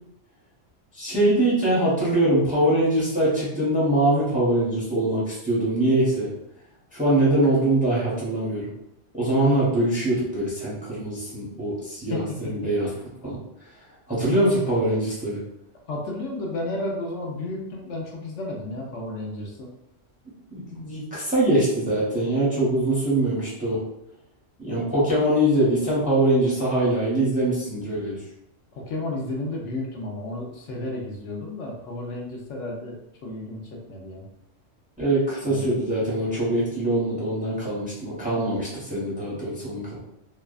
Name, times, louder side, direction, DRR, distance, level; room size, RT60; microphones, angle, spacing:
voice 1, 0.9-6.3 6.9-8.7 9.1-12.9 13.2-13.4 14.1-15.4 20.5-23.8 24.6-28.2 35.0-40.0, right 1 dB, 10° right, -8 dB, 0.6 m, -23 dB
voice 2, 15.9-19.7 28.7-34.2 35.5-35.7, left 2 dB, 75° left, -1 dB, 0.9 m, -32 dB
2.7 x 2.2 x 2.3 m, 0.84 s
omnidirectional pair, 1.3 m